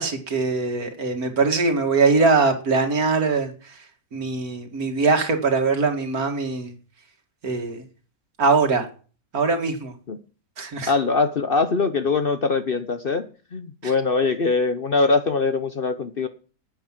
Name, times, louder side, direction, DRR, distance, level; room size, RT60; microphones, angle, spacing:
voice 1, 0.0-3.5 4.1-6.7 7.4-7.8 8.4-8.9 9.3-9.9 10.6-10.9 13.8-13.9, right 4 dB, 70° right, 5 dB, 2.5 m, -22 dB
voice 2, 10.9-13.3 13.5-16.3, left 4 dB, 45° left, 10 dB, 0.8 m, -22 dB
10.0 x 9.1 x 7.4 m, 0.39 s
omnidirectional pair, 1.6 m